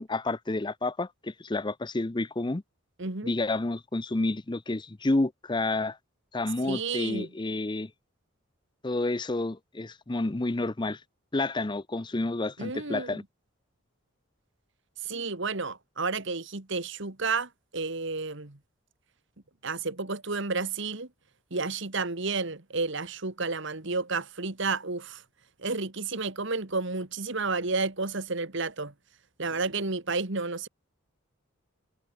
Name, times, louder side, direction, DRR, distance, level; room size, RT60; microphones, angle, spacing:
voice 1, 0.0-2.6 3.2-6.0 6.3-7.9 8.8-11.0 11.3-13.2, left 2 dB, 20° left, 0.6 m, -30 dB
voice 2, 3.0-3.3 6.6-7.3 12.6-13.2 15.0-18.6 19.6-21.1 21.5-25.2 25.6-28.9 29.4-30.7, right 3 dB, 60° right, 1.9 m, -31 dB
head